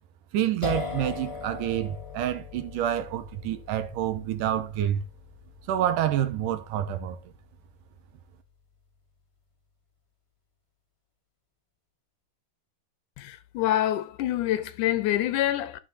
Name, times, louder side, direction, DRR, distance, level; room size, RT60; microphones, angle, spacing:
voice 1, 0.3-5.0 5.7-7.2, right 11 dB, 80° right, 2.4 m, -28 dB
sound 1, 0.6-8.2, left 5 dB, 15° left, 1.4 m, -40 dB
voice 2, 13.2-15.8, left 12 dB, 75° left, 2.2 m, -26 dB
14.0 x 6.0 x 2.8 m
omnidirectional pair, 3.8 m